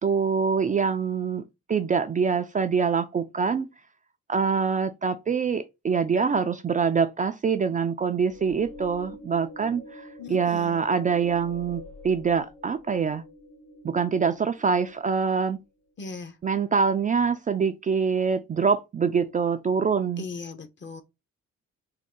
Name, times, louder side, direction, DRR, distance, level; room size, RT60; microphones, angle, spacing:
voice 1, 0.0-1.4 1.7-3.7 4.3-13.2 13.8-15.6 16.4-20.2, right 6 dB, 30° right, 0.3 m, -25 dB
sound 1, 8.2-15.5, left 1 dB, 75° left, 1.7 m, -46 dB
voice 2, 10.2-10.8 16.0-16.4 20.2-21.0, left 4 dB, 40° left, 0.7 m, -38 dB
3.6 x 2.1 x 3.7 m
cardioid pair, 90°, 30 cm